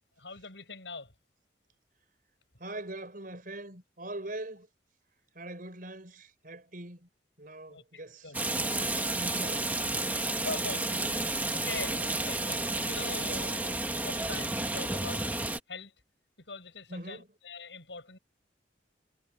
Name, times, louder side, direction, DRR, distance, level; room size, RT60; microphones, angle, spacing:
voice 1, 0.2-1.1 7.7-8.4 10.4-15.3 15.7-15.9 16.4-18.2, left 3 dB, 75° left, 7.6 m, -43 dB
voice 2, 2.6-4.7 5.3-7.1 7.4-8.3 9.1-10.7 16.9-17.3, right 1 dB, 50° right, 5.0 m, -42 dB
Rain, 8.3-15.6, right 2 dB, 10° right, 1.6 m, -31 dB
head